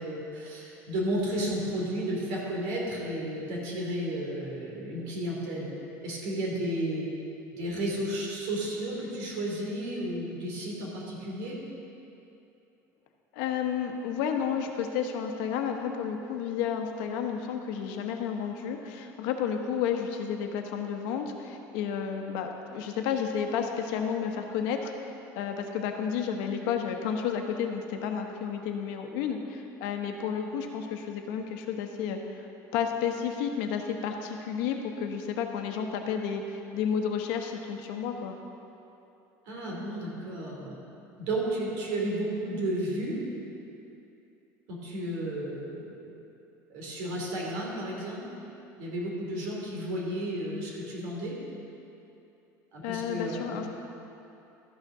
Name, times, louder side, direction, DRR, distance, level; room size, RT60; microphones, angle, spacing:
voice 1, 0.0-5.7 6.0-7.1 7.5-11.6 39.5-40.8 41.2-43.2 44.7-46.1 46.7-48.2 48.8-51.4 52.7-53.6, right 1 dB, 70° right, -3 dB, 2.8 m, -33 dB
voice 2, 13.3-32.5 32.7-38.4 52.8-53.6, left 7 dB, 70° left, 4 dB, 1.0 m, -31 dB
13.0 x 6.4 x 6.0 m, 2.9 s
cardioid pair, 180°, 7 cm